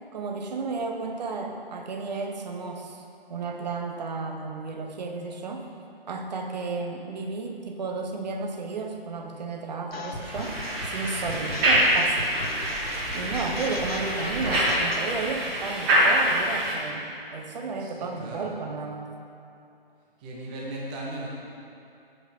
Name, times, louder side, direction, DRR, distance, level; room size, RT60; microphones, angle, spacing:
voice 1, 0.1-3.0 3.3-5.7 6.1-10.6 10.9-12.4 13.1-19.1, right 4 dB, 45° right, 3 dB, 0.9 m, -33 dB
sound 1, 9.9-15.1, left 2 dB, 75° left, 1.2 m, -37 dB
sound 2, 10.2-16.7, right 1 dB, 25° right, 1.5 m, -25 dB
voice 2, 11.1-11.5 17.8-18.5 20.2-21.3, right 1 dB, 10° right, -4 dB, 0.5 m, -37 dB
8.3 x 4.9 x 6.6 m, 2.7 s
figure-of-eight pair, 140°, 30 cm